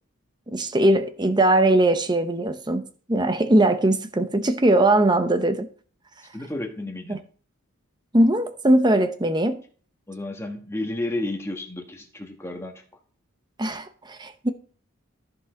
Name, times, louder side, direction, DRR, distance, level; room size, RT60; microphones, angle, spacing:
voice 1, 0.5-5.7 7.1-7.2 8.1-9.6 13.6-14.5, right 1 dB, 20° right, 0.8 m, -20 dB
voice 2, 6.3-7.2 10.1-12.7, left 2 dB, 10° left, 1.5 m, -31 dB
14.0 x 5.5 x 3.9 m
head